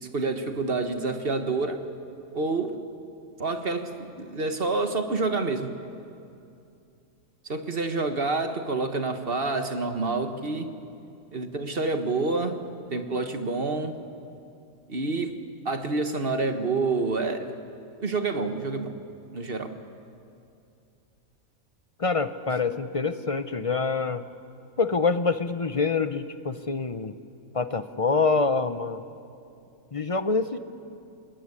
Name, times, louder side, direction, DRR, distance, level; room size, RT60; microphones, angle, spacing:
voice 1, 0.0-1.9 2.3-2.8 3.4-5.7 7.4-10.8 11.3-12.6 12.9-14.0 14.9-17.6 18.0-18.9 19.3-19.8, right 3 dB, 40° right, 7 dB, 1.5 m, -28 dB
voice 2, 22.0-24.2 24.8-27.1 27.5-29.0 29.9-30.6, left 4 dB, 30° left, 11 dB, 0.6 m, -26 dB
25.5 x 20.5 x 9.8 m, 2.5 s
omnidirectional pair, 1.5 m